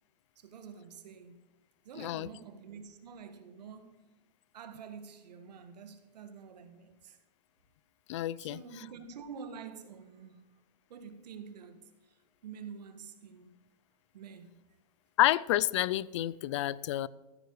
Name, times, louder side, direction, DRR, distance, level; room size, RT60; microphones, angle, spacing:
voice 1, 0.3-1.4 1.8-3.9 4.5-7.2 8.4-10.5 10.9-11.8 12.1-13.5 14.1-14.6, right 6 dB, 80° right, 1.6 m, -48 dB
voice 2, 2.0-2.3 8.1-8.6 15.2-17.1, left 15 dB, 45° left, 0.4 m, -29 dB
14.0 x 9.7 x 4.7 m
supercardioid pair, 160°, 21 cm